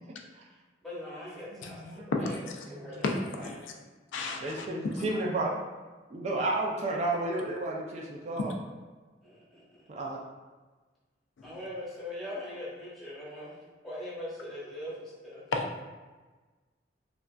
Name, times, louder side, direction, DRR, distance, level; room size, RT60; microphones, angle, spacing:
voice 1, 0.8-2.3 2.7-3.7 9.2-9.8 11.4-13.5 13.8-15.4, left 1 dB, ahead, -9 dB, 0.9 m, -41 dB
voice 2, 1.6-2.1 2.8-3.0 4.4-5.5 6.1-8.5 9.9-10.2, right 2 dB, 35° right, -1 dB, 0.3 m, -32 dB
voice 3, 2.2-2.6 3.0-3.1 3.4-3.7 4.1-5.1 8.4-8.5 15.5-15.8, left 3 dB, 90° left, 2 dB, 0.4 m, -33 dB
3.2 x 2.5 x 2.3 m, 1.3 s
head